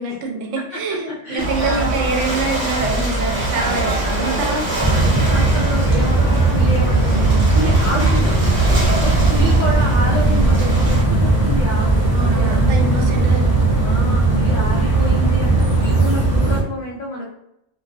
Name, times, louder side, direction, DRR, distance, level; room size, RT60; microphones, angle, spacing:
voice 1, 0.0-4.8 12.1-13.9, right 2 dB, 75° right, 1 dB, 0.9 m, -25 dB
voice 2, 1.2-1.9 3.5-4.6 4.9-12.7 13.8-17.3, equal, 80° left, -4 dB, 0.4 m, -28 dB
Ocean / Boat Water vehicle, 1.4-11.0, right 2 dB, 45° right, 0.9 m, -23 dB
sound 1, 4.8-16.6, right 2 dB, 15° right, 0.9 m, -17 dB
2.4 x 2.2 x 2.4 m, 0.81 s
omnidirectional pair, 1.3 m